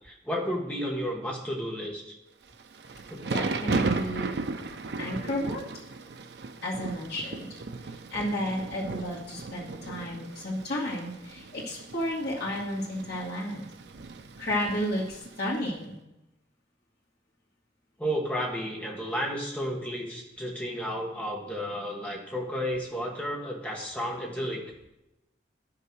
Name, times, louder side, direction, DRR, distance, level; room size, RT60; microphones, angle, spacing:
voice 1, 0.0-2.0 3.1-3.3 18.0-24.7, equal, 5° left, -1 dB, 1.6 m, -32 dB
Thunder / Rain, 2.5-15.6, right 3 dB, 65° right, 0.6 m, -36 dB
voice 2, 3.2-4.3 5.0-5.6 6.6-7.5 8.1-13.7 14.4-16.0, left 1 dB, 55° left, -7 dB, 2.2 m, -32 dB
10.5 x 5.8 x 6.2 m, 0.91 s
head